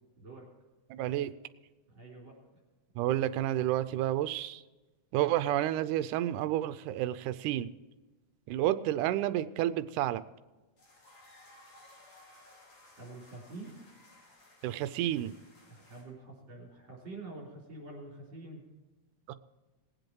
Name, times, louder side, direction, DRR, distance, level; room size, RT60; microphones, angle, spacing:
voice 1, 0.2-0.5 1.9-2.4 13.0-13.8 15.7-18.6, right 2 dB, 40° right, -4 dB, 4.1 m, -46 dB
voice 2, 0.9-1.3 3.0-4.6 5.1-7.7 8.5-10.2 14.6-15.3 19.3-19.4, right 13 dB, 85° right, 12 dB, 2.1 m, -30 dB
sound 1, 10.8-16.0, left 2 dB, 60° left, 5.9 m, -58 dB
20.5 x 7.9 x 4.6 m, 1.2 s
omnidirectional pair, 3.6 m